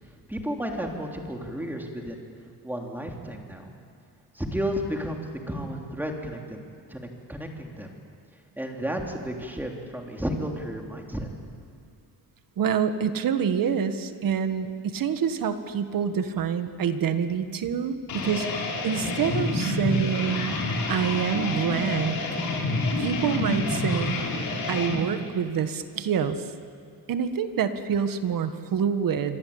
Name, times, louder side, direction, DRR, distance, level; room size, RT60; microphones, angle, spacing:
voice 1, 0.3-2.2 2.6-3.7 4.3-6.6 6.9-7.9 8.6-11.3, equal, 5° right, 1 dB, 3.3 m, -32 dB
voice 2, 12.6-20.6 20.9-22.2 23.0-24.2 24.7-26.4 27.1-29.4, right 7 dB, 60° right, 9 dB, 1.7 m, -27 dB
sound 1, 18.1-25.0, left 2 dB, 65° left, 5.6 m, -28 dB
27.5 x 25.0 x 8.8 m, 2.3 s
cardioid pair, 145°, 38 cm